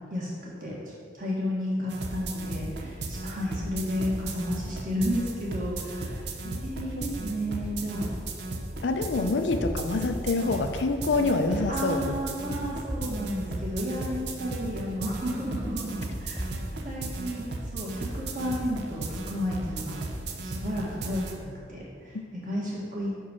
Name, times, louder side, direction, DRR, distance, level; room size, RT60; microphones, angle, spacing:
voice 1, 0.1-6.2 6.6-8.1 11.7-16.4 16.8-20.0 20.4-23.1, equal, 45° right, -5 dB, 1.7 m, -32 dB
sound 1, 1.9-21.4, right 2 dB, 70° right, 0.6 m, -36 dB
voice 2, 6.4-7.1 8.8-12.2, left 3 dB, 85° left, 7 dB, 0.5 m, -27 dB
sound 2, 6.6-8.3 8.6-8.9 9.4-11.2 11.5-12.2 12.4-12.5 12.8-13.8 14.1-14.2 14.9-15.0 16.0-16.1 16.3-17.3, equal, 5° right, 0.4 m, -41 dB
5.5 x 4.5 x 6.2 m, 2.2 s
head